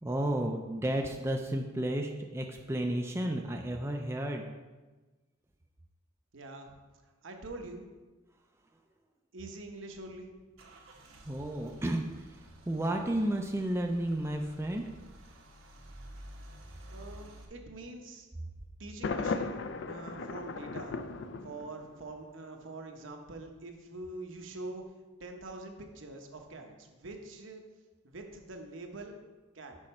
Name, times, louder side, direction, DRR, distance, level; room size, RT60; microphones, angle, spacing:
voice 1, 0.0-4.5 11.2-12.0 12.7-14.8, right 1 dB, 15° right, 2 dB, 0.4 m, -32 dB
voice 2, 6.3-6.7 7.2-7.9 9.3-10.3 16.9-18.3 18.8-21.0 21.4-24.8 25.2-27.6 28.0-29.2 29.5-29.8, right 2 dB, 70° right, 3 dB, 0.9 m, -44 dB
Car / Engine starting / Idling, 9.8-17.4, equal, 90° right, 1.2 m, -52 dB
Thunder, 19.0-22.0, left 4 dB, 60° left, 0.4 m, -36 dB
6.4 x 5.5 x 4.3 m, 1.2 s
head